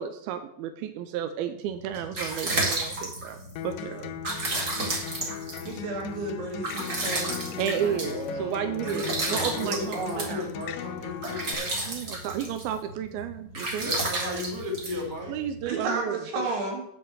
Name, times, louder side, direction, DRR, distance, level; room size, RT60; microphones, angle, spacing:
voice 1, 0.0-3.4 3.6-4.2 4.6-4.7 7.6-10.5 11.9-13.9 15.3-16.2, right 9 dB, 90° right, 9 dB, 2.2 m, -32 dB
sound 1, 1.7-15.7, right 2 dB, 35° right, 1.5 m, -33 dB
Acoustic guitar, 3.6-11.5, left 10 dB, 85° left, 1.9 m, -38 dB
voice 2, 5.7-8.1 8.8-9.1 9.5-10.4 15.7-16.8, right 3 dB, 70° right, 1 dB, 4.0 m, -33 dB
voice 3, 8.0-11.7 13.8-15.3, left 1 dB, 5° right, -2 dB, 1.5 m, -36 dB
8.4 x 5.7 x 8.0 m, 0.70 s
omnidirectional pair, 5.1 m